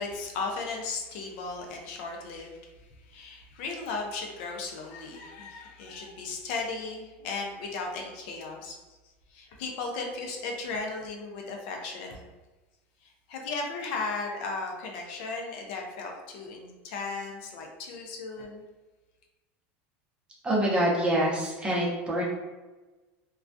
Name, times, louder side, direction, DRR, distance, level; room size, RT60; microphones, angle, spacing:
voice 1, 0.0-2.6 3.1-8.8 9.3-12.3 13.0-18.6, left 3 dB, 65° left, 1 dB, 0.5 m, -36 dB
voice 2, 20.4-22.2, right 1 dB, 15° right, -4 dB, 0.7 m, -25 dB
2.2 x 2.2 x 2.5 m, 1.2 s
supercardioid pair, 135°, 6 cm